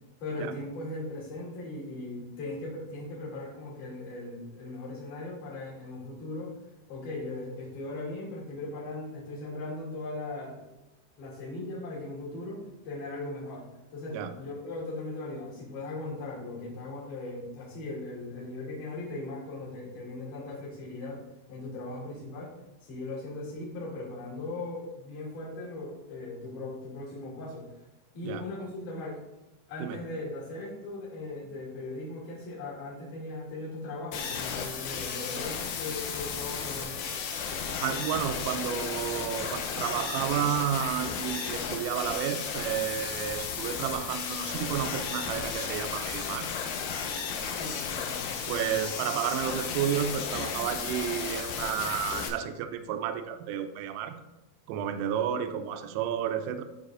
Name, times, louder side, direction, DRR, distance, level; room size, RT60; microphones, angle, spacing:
voice 1, 0.2-6.5 6.9-10.6 11.2-22.5 22.8-27.7 28.1-29.2 29.7-37.1 47.6-48.7, left 2 dB, 45° left, -6 dB, 3.4 m, -39 dB
sound 1, 34.1-52.3, left 6 dB, 80° left, 3.2 m, -34 dB
voice 2, 37.8-46.5 48.5-54.1 54.7-56.6, right 9 dB, 85° right, 9 dB, 3.2 m, -31 dB
13.0 x 4.7 x 2.5 m, 0.97 s
omnidirectional pair, 5.8 m